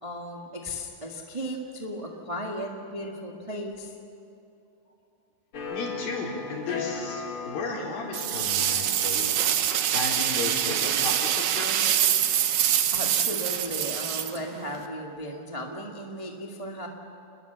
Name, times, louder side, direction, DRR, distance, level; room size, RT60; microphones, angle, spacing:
voice 1, 0.0-3.9 12.9-16.9, equal, 20° right, 0 dB, 0.9 m, -35 dB
sound 1, 5.5-11.1, left 5 dB, 45° left, 2.3 m, -39 dB
voice 2, 5.7-9.4 9.9-11.8, left 3 dB, 80° left, -2 dB, 5.9 m, -34 dB
sound 2, 8.1-14.9, right 10 dB, 75° right, 2.7 m, -25 dB
28.5 x 21.0 x 7.0 m, 2.7 s
omnidirectional pair, 4.0 m